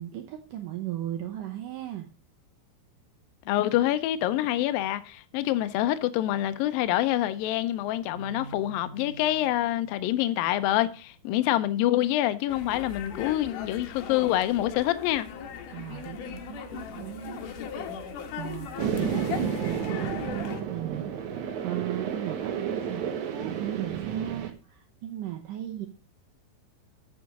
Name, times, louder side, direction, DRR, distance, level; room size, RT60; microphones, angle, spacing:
voice 1, 0.0-2.1 15.7-17.5 17.9-18.0 18.4-25.9, right 12 dB, 80° right, 1.9 m, -37 dB
voice 2, 3.5-15.3, left 14 dB, 85° left, 2.0 m, -26 dB
Keyboard (musical), 8.1-11.0, right 4 dB, 20° left, 3.0 m, -47 dB
sound 1, 12.5-20.6, left 7 dB, 65° left, 2.2 m, -38 dB
sound 2, 18.8-24.5, right 8 dB, 65° right, 1.9 m, -31 dB
8.3 x 6.3 x 6.0 m
omnidirectional pair, 4.9 m